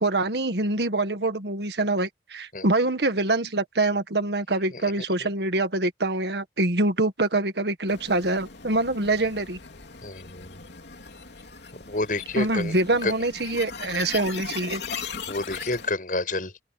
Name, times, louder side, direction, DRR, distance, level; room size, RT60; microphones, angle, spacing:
voice 1, 0.0-9.6 12.4-14.8, right 2 dB, 75° right, 1.7 m, -25 dB
sound 1, 7.9-15.9, left 5 dB, 80° left, 2.8 m, -39 dB
voice 2, 10.0-10.6 11.8-12.7 13.0-13.1 15.3-16.5, left 2 dB, 50° left, 7.0 m, -29 dB
open air
head